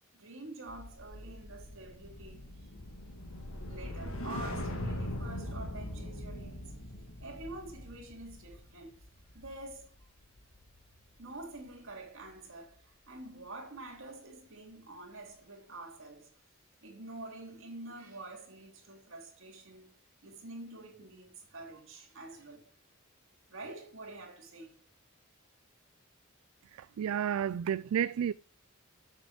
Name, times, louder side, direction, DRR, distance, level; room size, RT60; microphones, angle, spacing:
voice 1, 0.1-2.7 3.7-6.8 7.2-9.0 9.3-9.9 11.2-16.3 16.8-19.9 20.2-22.6 23.5-24.8, right 2 dB, 65° right, 3.3 m, -47 dB
sound 1, 0.7-11.1 11.4-11.7, left 1 dB, 80° left, 1.6 m, -41 dB
voice 2, 26.7-28.3, right 9 dB, 85° right, 0.3 m, -31 dB
7.5 x 6.8 x 5.0 m
head